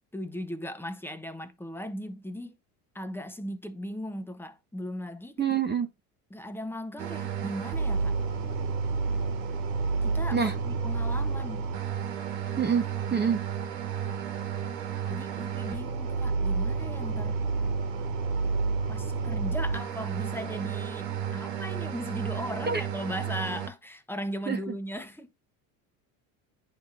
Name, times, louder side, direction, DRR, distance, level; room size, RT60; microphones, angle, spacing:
voice 1, 0.1-2.6 2.9-5.5 6.3-8.2 10.0-11.7 15.1-17.4 18.9-25.3, equal, 5° left, 0.9 m, -37 dB
voice 2, 5.4-5.9 10.3-10.5 12.6-13.4 22.7-22.8 24.5-24.6, right 7 dB, 20° right, 1.0 m, -26 dB
sound 1, 7.0-23.7, right 5 dB, 80° right, 1.6 m, -31 dB
10.0 x 3.6 x 2.6 m
hypercardioid pair, 80°, 48 cm